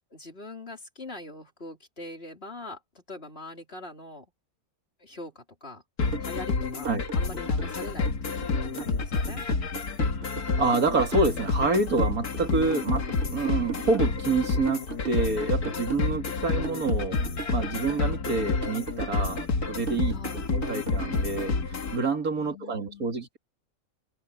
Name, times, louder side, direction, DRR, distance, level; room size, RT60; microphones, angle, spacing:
voice 1, 0.1-4.3 5.0-5.8 6.2-8.4 8.8-9.4 15.7-15.9 20.1-20.4 22.3-23.2, left 2 dB, 40° left, 4.2 m, -43 dB
sound 1, 6.0-22.0, left 4 dB, 85° left, 2.4 m, -29 dB
sound 2, 6.1-21.5, right 4 dB, 45° right, 1.0 m, -38 dB
voice 2, 10.6-13.1 13.3-20.2 20.5-23.4, right 3 dB, 70° right, 2.8 m, -27 dB
omnidirectional pair, 1.6 m